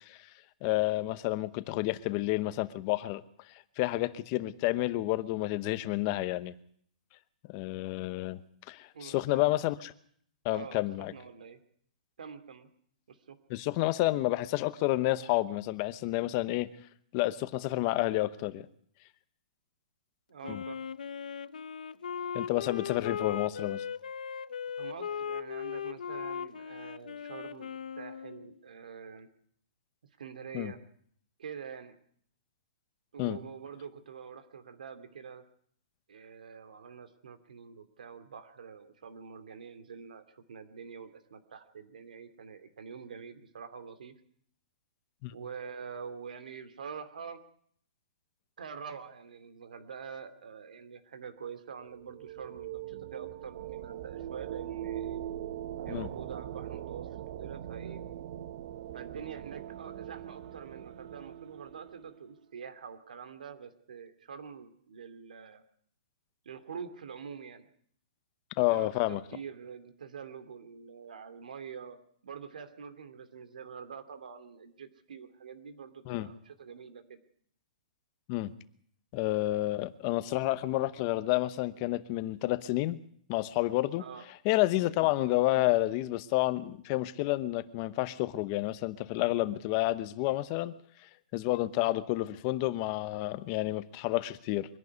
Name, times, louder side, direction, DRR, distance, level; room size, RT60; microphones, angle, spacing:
voice 1, 0.6-3.2 3.8-6.5 7.5-8.4 8.7-9.9 10.4-11.1 13.5-16.7 17.1-18.7 20.5-20.6 22.3-23.8 30.5-30.7 33.2-33.4 45.2-45.3 55.9-56.1 68.6-69.2 76.1-76.3 78.3-78.5 79.1-83.0 83.3-84.0 84.4-90.7 91.3-94.8, left 17 dB, 25° left, 14 dB, 0.9 m, -30 dB
voice 2, 8.9-9.5 10.5-11.6 12.2-12.7 13.1-13.4 20.3-20.9 24.8-27.7 28.0-29.3 30.2-30.8 31.4-32.0 33.1-35.4 36.1-44.1 45.3-47.4 48.6-55.2 55.8-58.0 58.9-65.6 66.4-67.7 68.7-72.0 72.2-77.2 84.0-84.3 84.7-85.0, right 6 dB, 75° right, 9 dB, 2.5 m, -46 dB
Wind instrument woodwind instrument, 20.4-28.5, left 7 dB, 85° left, 1.0 m, -38 dB
sound 1, 51.8-62.3, right 11 dB, 40° right, 0.8 m, -41 dB
23.5 x 11.5 x 9.6 m, 0.63 s
hypercardioid pair, 170°, 4 cm